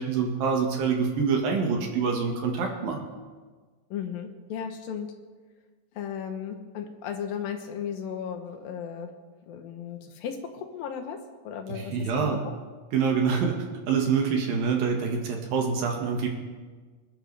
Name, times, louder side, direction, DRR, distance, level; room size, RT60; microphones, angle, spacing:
voice 1, 0.0-3.1 11.7-12.4 12.9-16.3, right 5 dB, 70° right, 1 dB, 3.3 m, -26 dB
voice 2, 3.9-5.1 6.0-9.1 9.5-11.2 11.4-12.4, left 8 dB, 75° left, 6 dB, 2.7 m, -35 dB
26.0 x 11.5 x 3.4 m, 1.4 s
omnidirectional pair, 4.4 m